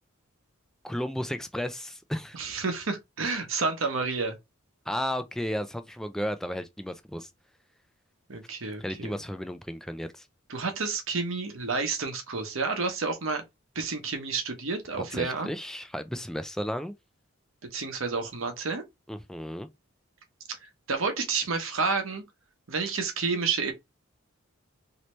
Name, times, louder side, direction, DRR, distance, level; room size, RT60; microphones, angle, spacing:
voice 1, 0.8-2.4 4.9-7.3 8.8-10.3 15.1-16.9 19.1-19.7, equal, ahead, 0.3 m, -33 dB
voice 2, 2.3-4.4 8.3-9.2 10.5-13.4 13.7-15.5 17.7-18.8 20.6-22.2 22.7-23.7, right 4 dB, 70° right, 0.9 m, -30 dB
3.2 x 2.8 x 3.0 m
head